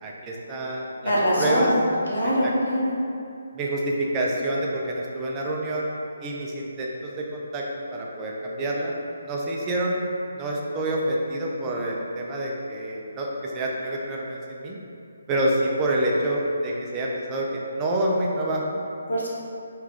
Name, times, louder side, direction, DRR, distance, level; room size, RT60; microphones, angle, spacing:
voice 1, 0.0-1.7 2.4-2.5 3.5-5.9 6.2-7.6 7.9-8.9 9.2-10.0 10.3-14.8 15.3-18.8, right 1 dB, 20° right, -2 dB, 0.3 m, -27 dB
voice 2, 1.0-1.7 2.1-3.0 19.1-19.3, equal, 85° left, -5 dB, 0.7 m, -23 dB
3.1 x 2.3 x 2.4 m, 2.6 s
figure-of-eight pair, 150°, 0 cm